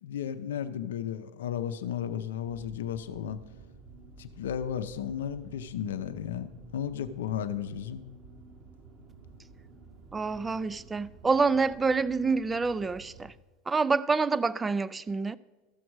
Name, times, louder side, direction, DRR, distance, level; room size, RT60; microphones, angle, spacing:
voice 1, 0.0-3.4 4.2-8.0, left 9 dB, 90° left, 0.6 m, -34 dB
sound 1, 2.4-13.3, right 3 dB, 45° right, 1.3 m, -52 dB
voice 2, 10.1-13.3 13.7-15.4, right 4 dB, 15° right, 0.3 m, -27 dB
14.0 x 6.3 x 4.6 m
supercardioid pair, 110°, 0 cm